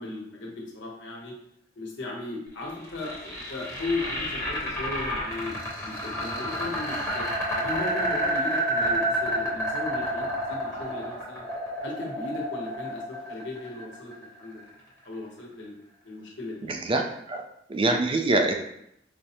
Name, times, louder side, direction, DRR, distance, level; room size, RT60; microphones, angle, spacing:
voice 1, 0.0-1.3 1.8-7.3 7.5-11.5 11.8-14.1 14.4-14.7 15.0-15.7 16.0-16.7, left 2 dB, 80° left, -3 dB, 1.0 m, -36 dB
sound 1, 2.6-14.7, equal, 15° left, 1.0 m, -30 dB
voice 2, 16.6-17.4 17.7-18.5, right 2 dB, 30° right, 4 dB, 0.3 m, -25 dB
4.7 x 2.1 x 2.8 m, 0.75 s
head